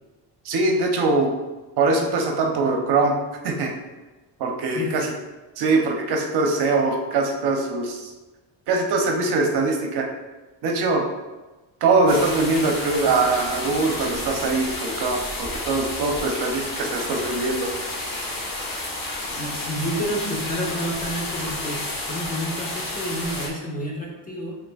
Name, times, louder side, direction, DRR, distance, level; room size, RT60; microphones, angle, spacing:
voice 1, 0.4-1.3 1.8-3.2 3.4-3.7 4.4-5.1 5.6-8.1 8.7-10.1 10.6-11.0 11.8-17.7, right 3 dB, 60° right, 2 dB, 0.8 m, -22 dB
sound 1, 12.1-23.5, left 2 dB, 50° left, 1.5 m, -31 dB
voice 2, 19.3-21.8 22.1-24.6, equal, 20° left, -2 dB, 1.1 m, -29 dB
5.3 x 3.7 x 2.4 m, 1.2 s
cardioid pair, 95°, 44 cm